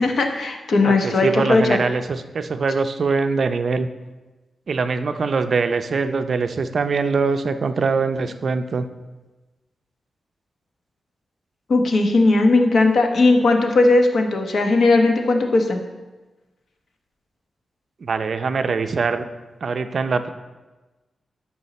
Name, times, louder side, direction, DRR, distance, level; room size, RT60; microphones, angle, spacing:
voice 1, 0.0-1.8 11.7-15.8, left 2 dB, 65° left, 4 dB, 1.1 m, -17 dB
voice 2, 0.9-3.9 4.7-8.9 18.0-19.3 19.6-20.3, right 4 dB, 50° right, 9 dB, 0.5 m, -23 dB
12.5 x 5.7 x 4.2 m, 1.2 s
wide cardioid pair, 140°, 0 cm